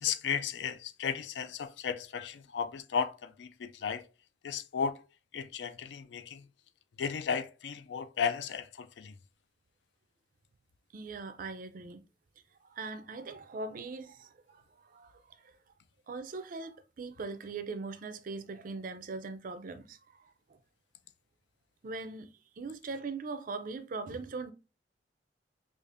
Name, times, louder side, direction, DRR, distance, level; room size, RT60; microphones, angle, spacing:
voice 1, 0.0-4.0 4.4-5.0 5.3-6.4 7.0-9.1, left 7 dB, 70° left, 0.4 m, -34 dB
voice 2, 10.9-12.0 12.6-15.6 16.1-20.6 21.8-24.5, right 3 dB, 50° right, 0.4 m, -41 dB
4.9 x 2.4 x 2.4 m
head